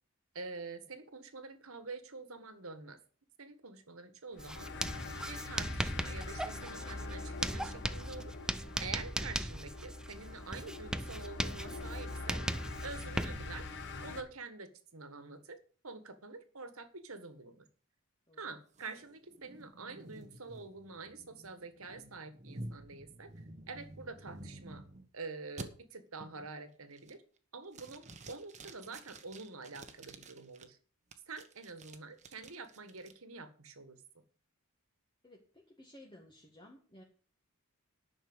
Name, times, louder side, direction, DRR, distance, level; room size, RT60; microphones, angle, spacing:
voice 1, 0.3-3.0 3.4-4.7 5.3-12.4 12.8-13.7 14.0-17.7 18.4-23.3 23.7-24.8 25.1-27.2 27.5-30.8 31.3-34.0, right 4 dB, 70° right, 10 dB, 1.6 m, -47 dB
sound 1, 4.4-14.2, left 3 dB, 55° left, 1.4 m, -44 dB
Writing, 4.4-13.7, right 1 dB, 5° right, 0.4 m, -39 dB
sound 2, 18.7-25.1 25.6-25.7 26.2-26.5 26.9-27.4 27.7-30.6 31.1-33.1, right 2 dB, 35° right, 1.2 m, -50 dB
voice 2, 35.2-37.0, left 1 dB, 20° left, 0 dB, 1.8 m, -56 dB
11.0 x 6.4 x 7.9 m, 0.42 s
head